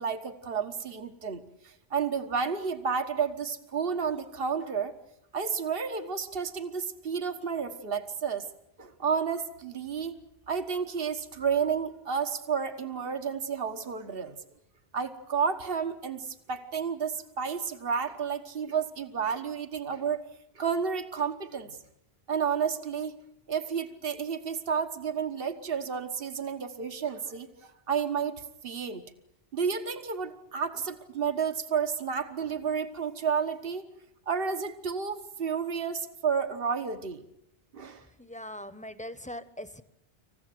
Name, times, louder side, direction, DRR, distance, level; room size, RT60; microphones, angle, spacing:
voice 1, 0.0-4.9 5.3-8.4 8.8-10.2 10.5-14.4 14.9-20.2 20.5-21.7 22.3-23.1 23.5-29.0 29.5-33.8 34.3-37.2 37.7-38.0, right 6 dB, 65° right, 8 dB, 1.6 m, -31 dB
voice 2, 38.2-39.8, left 1 dB, 5° left, 13 dB, 1.0 m, -41 dB
27.0 x 15.5 x 9.4 m, 0.80 s
omnidirectional pair, 1.0 m